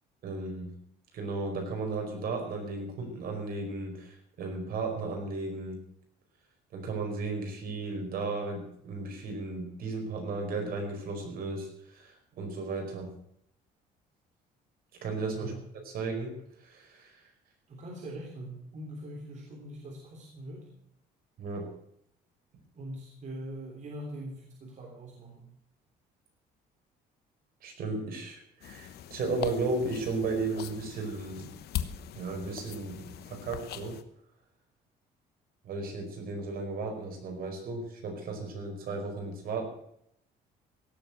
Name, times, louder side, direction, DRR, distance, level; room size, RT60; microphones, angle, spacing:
voice 1, 0.2-0.7 1.1-5.8 6.7-13.1 15.0-15.5 15.8-16.3 16.6-17.2 21.4-21.7 27.6-31.5 32.2-34.0 35.6-39.7, right 3 dB, 60° right, 3 dB, 4.9 m, -35 dB
voice 2, 15.4-15.7 17.7-20.7 22.8-25.5, right 1 dB, 45° right, 0 dB, 3.4 m, -42 dB
sound 1, 28.6-34.0, left 11 dB, 70° left, 1.2 m, -41 dB
17.0 x 7.6 x 7.8 m, 0.71 s
cardioid pair, 110°, 17 cm